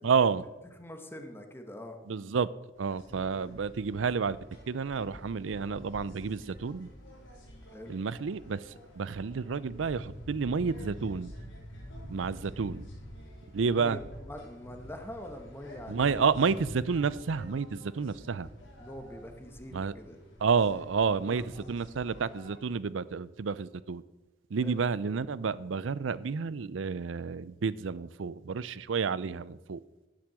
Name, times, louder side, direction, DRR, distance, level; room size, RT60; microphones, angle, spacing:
voice 1, 0.0-0.5 2.1-2.5 2.8-4.4 4.7-6.9 7.9-11.3 12.1-12.9 13.5-14.0 15.9-18.5 19.7-19.9 20.4-24.0 24.5-29.8, right 5 dB, 80° right, 0.5 m, -30 dB
voice 2, 0.8-2.0 3.1-3.5 7.7-7.9 13.4-16.2 18.8-20.2 21.3-21.7 24.6-24.7, left 1 dB, 10° left, 1.2 m, -44 dB
sound 1, 2.7-22.6, equal, 85° left, 3.9 m, -48 dB
10.5 x 7.6 x 7.6 m
head